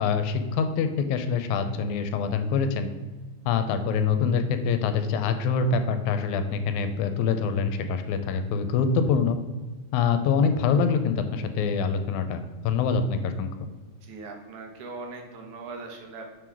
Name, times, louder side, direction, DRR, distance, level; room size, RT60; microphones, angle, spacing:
voice 1, 0.0-2.9 3.5-9.4 9.9-13.5, left 5 dB, 85° left, 8 dB, 2.0 m, -25 dB
voice 2, 14.0-16.4, right 3 dB, 85° right, 2 dB, 2.5 m, -40 dB
6.4 x 3.9 x 4.5 m, 1.3 s
omnidirectional pair, 3.4 m